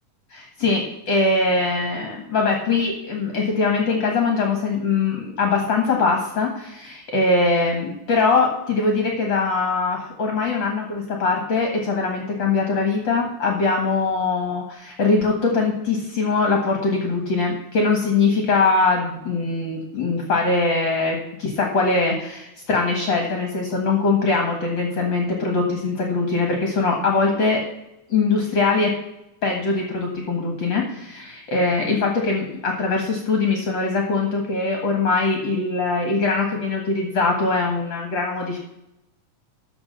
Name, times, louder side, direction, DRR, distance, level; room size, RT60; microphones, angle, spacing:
voice 1, 0.3-27.7 28.1-28.9 29.4-38.6, left 3 dB, 45° left, 1 dB, 2.0 m, -22 dB
13.5 x 4.7 x 6.7 m, 0.85 s
omnidirectional pair, 3.5 m